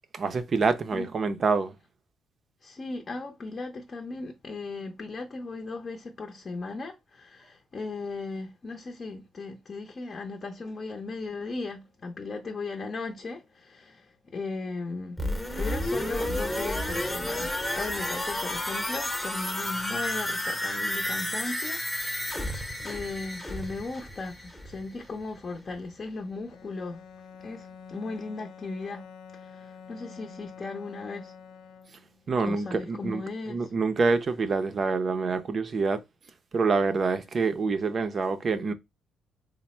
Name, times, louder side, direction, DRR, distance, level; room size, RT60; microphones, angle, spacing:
voice 1, 0.1-1.7 32.3-33.2 33.5-36.0 36.5-38.7, right 4 dB, 45° right, 0.5 m, -26 dB
voice 2, 2.6-14.1 14.3-15.2 15.6-27.0 27.4-29.1 29.4-31.3 32.4-33.7, left 3 dB, 40° left, 0.6 m, -37 dB
sound 1, 15.2-24.9 25.2-25.3, left 1 dB, 5° left, 0.8 m, -31 dB
Bowed string instrument, 26.5-32.3, left 6 dB, 90° left, 0.4 m, -47 dB
3.3 x 2.0 x 4.2 m
cardioid pair, 90°, 0 cm